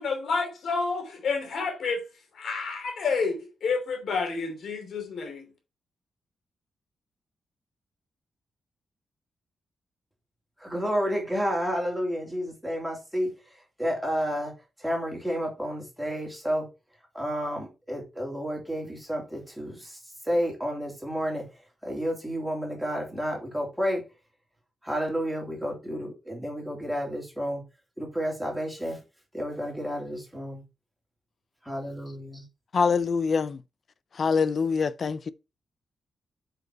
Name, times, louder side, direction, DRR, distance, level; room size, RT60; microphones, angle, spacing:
voice 1, 0.0-2.0 2.3-5.5, left 4 dB, 60° left, 2.9 m, -29 dB
voice 2, 10.6-13.3 13.8-16.7 17.1-20.0 20.2-21.5 21.8-24.1 24.8-27.6 28.0-29.0 29.3-30.6 31.6-32.4, equal, ahead, 3.1 m, -30 dB
voice 3, 32.7-33.6 34.2-35.3, left 5 dB, 40° left, 0.5 m, -24 dB
8.0 x 5.3 x 4.6 m
wide cardioid pair, 175°, 0 cm